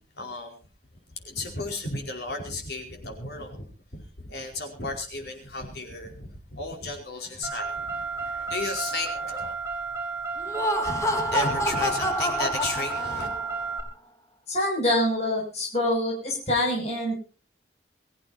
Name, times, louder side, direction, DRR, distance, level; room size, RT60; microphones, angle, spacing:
voice 1, 0.1-0.6 1.2-9.5 11.3-13.3, left 2 dB, 65° left, 3 dB, 4.8 m, -34 dB
Car, 7.4-13.8, right 4 dB, 15° right, 3.6 m, -32 dB
Laughter, 10.4-13.6, left 1 dB, 20° left, 1.8 m, -28 dB
voice 2, 14.5-17.1, left 1 dB, 40° left, -2 dB, 7.2 m, -25 dB
24.5 x 15.0 x 2.8 m, 0.36 s
head